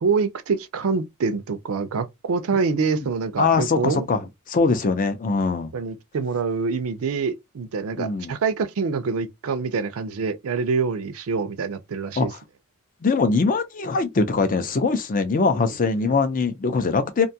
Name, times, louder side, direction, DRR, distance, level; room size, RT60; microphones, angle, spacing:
voice 1, 0.0-4.1 5.7-12.3 16.0-16.1, right 5 dB, 65° right, 0.4 m, -25 dB
voice 2, 3.4-4.2 4.5-5.7 8.0-8.3 12.2-12.3 13.0-17.3, left 4 dB, 35° left, 0.5 m, -22 dB
2.6 x 2.3 x 2.7 m
head